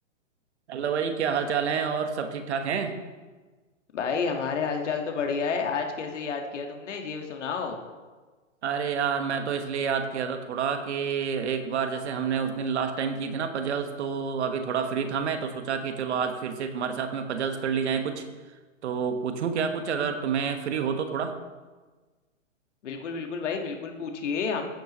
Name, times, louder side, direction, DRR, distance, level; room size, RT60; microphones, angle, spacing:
voice 1, 0.7-3.0 8.6-18.2 18.8-21.4, right 6 dB, 60° right, 7 dB, 1.4 m, -28 dB
voice 2, 3.9-7.8 22.8-24.6, left 5 dB, 65° left, 3 dB, 1.7 m, -30 dB
14.5 x 9.1 x 3.1 m, 1.3 s
hypercardioid pair, 130°, 38 cm